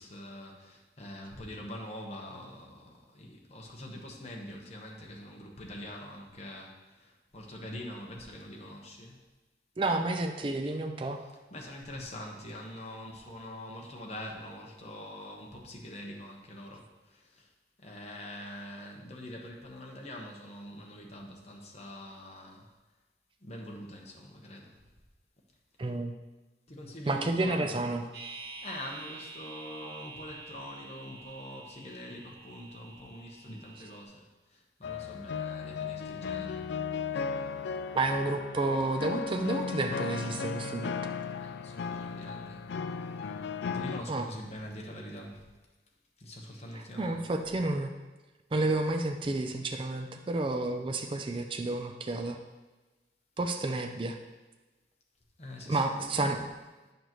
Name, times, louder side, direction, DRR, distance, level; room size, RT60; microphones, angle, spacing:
voice 1, 0.0-9.2 11.5-17.5 17.8-22.6 23.4-24.8 26.7-27.9 28.6-34.2 34.5-36.6 41.4-42.7 43.7-45.5 46.2-47.2 55.4-56.4, left 1 dB, 40° left, -1 dB, 1.1 m, -44 dB
voice 2, 9.8-11.2 25.8-26.1 27.1-28.0 37.9-40.9 44.1-44.2 46.7-47.9 48.5-52.4 53.4-54.2 55.7-56.5, right 2 dB, 30° right, 5 dB, 0.4 m, -30 dB
sound 1, 28.1-34.0, right 3 dB, 65° right, 1.6 m, -47 dB
sound 2, 34.8-44.0, left 5 dB, 75° left, 0.3 m, -36 dB
8.2 x 6.6 x 3.1 m, 1.2 s
head